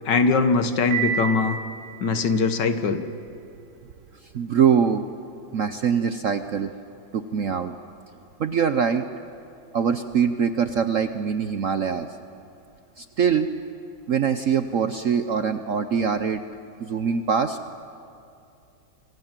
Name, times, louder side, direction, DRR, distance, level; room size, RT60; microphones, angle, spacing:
voice 1, 0.1-1.6 2.0-3.0, left 4 dB, 65° left, 9 dB, 1.8 m, -21 dB
Piano, 0.9-2.9, right 7 dB, 20° right, 6.0 m, -31 dB
voice 2, 4.3-5.0 5.5-6.7 7.1-7.7 8.4-9.0 9.7-12.1 13.0-13.5 14.1-16.4 16.8-17.6, right 7 dB, 60° right, 9 dB, 0.9 m, -23 dB
27.0 x 25.5 x 7.5 m, 2.7 s
omnidirectional pair, 2.1 m